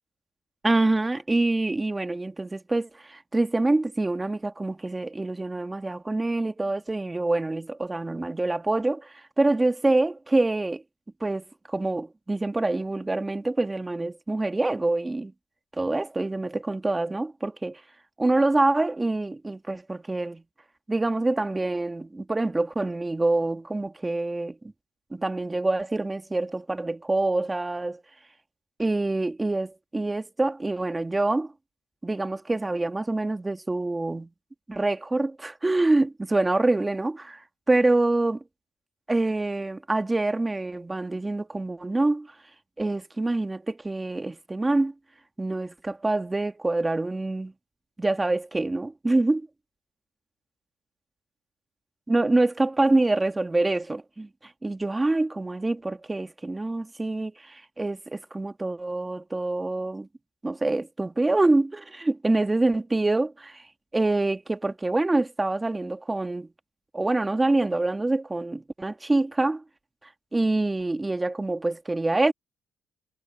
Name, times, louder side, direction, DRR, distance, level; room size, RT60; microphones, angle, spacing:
voice 1, 0.6-10.8 11.2-15.3 15.8-17.8 18.2-20.4 20.9-24.6 25.1-28.0 28.8-31.5 32.0-34.3 34.7-37.4 37.7-38.4 39.1-42.3 42.8-44.9 45.4-47.5 48.0-49.5 52.1-54.3 54.6-60.1 60.4-63.6 63.9-66.5 66.9-69.6 70.3-72.3, right 2 dB, 15° right, 1.8 m, -26 dB
cardioid pair, 90°, 0 cm